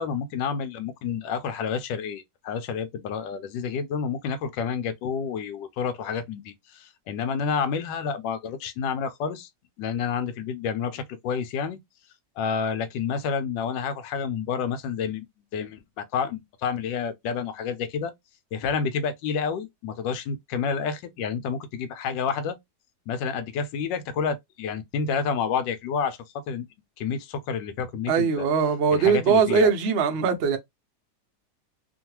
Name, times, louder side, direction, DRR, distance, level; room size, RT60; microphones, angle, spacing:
voice 1, 0.0-9.5 9.8-11.8 12.4-15.2 15.5-18.1 18.5-22.6 23.1-26.2 26.5-26.7 27.0-28.5 28.9-29.7, left 6 dB, 90° left, 1.3 m, -29 dB
voice 2, 28.1-30.6, right 6 dB, 80° right, 0.5 m, -21 dB
3.1 x 2.2 x 2.8 m
omnidirectional pair, 1.9 m